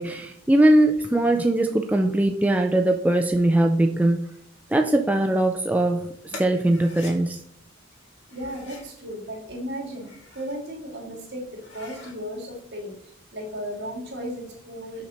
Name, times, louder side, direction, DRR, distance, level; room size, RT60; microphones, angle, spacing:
voice 1, 0.0-4.3 4.7-7.4, right 1 dB, 10° right, 3 dB, 0.4 m, -21 dB
sound 1, 6.3-7.1 8.2-8.9 9.8-10.6 11.0-11.1 11.5-12.2, left 3 dB, 65° left, 2.1 m, -44 dB
voice 2, 8.3-10.1 10.3-15.0, equal, 60° right, -3 dB, 2.8 m, -35 dB
6.5 x 5.7 x 4.3 m, 0.68 s
head